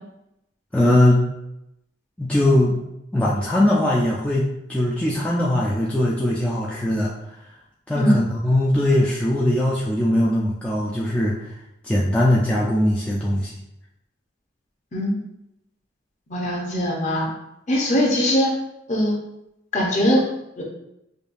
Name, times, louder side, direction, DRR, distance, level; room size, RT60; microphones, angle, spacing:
voice 1, 0.7-1.3 2.2-2.8 3.1-7.1 7.9-11.4 11.8-13.5, left 1 dB, 5° left, -6 dB, 0.4 m, -20 dB
voice 2, 16.3-17.3 17.7-18.5 18.9-19.1 19.7-20.2 20.6-20.7, equal, 40° left, -1 dB, 0.8 m, -21 dB
5.1 x 2.3 x 2.5 m, 0.83 s
head